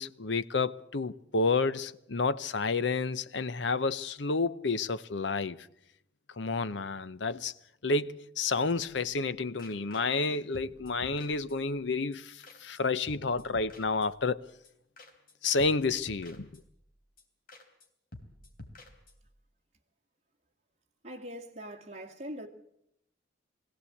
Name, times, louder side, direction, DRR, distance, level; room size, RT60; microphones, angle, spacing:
voice 1, 0.0-5.6 6.4-7.5 7.8-14.4 15.4-16.6, left 4 dB, 70° left, 0.8 m, -30 dB
sound 1, 8.8-9.3 9.6-10.3 10.5-11.8 12.1-12.2 12.4-12.8 13.1-14.4 14.6-14.7 15.0-15.3 15.6-16.9 17.2-17.3 17.5-17.9 18.1-19.4, left 1 dB, 50° left, 3.4 m, -51 dB
voice 2, 21.0-22.5, equal, 35° right, 2.1 m, -42 dB
21.5 x 17.0 x 8.5 m
head